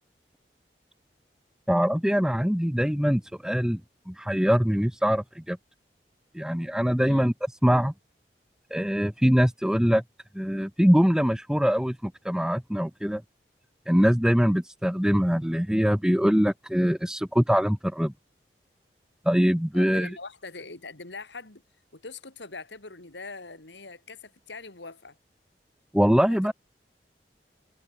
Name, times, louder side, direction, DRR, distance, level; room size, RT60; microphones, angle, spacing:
voice 1, 1.7-3.8 4.1-5.6 6.3-7.3 7.6-7.9 8.7-10.0 10.3-13.2 13.9-18.1 19.3-20.1 25.9-26.5, equal, 5° right, 0.8 m, -23 dB
voice 2, 19.7-21.6 21.9-25.2 26.2-26.5, left 3 dB, 85° left, 2.8 m, -42 dB
head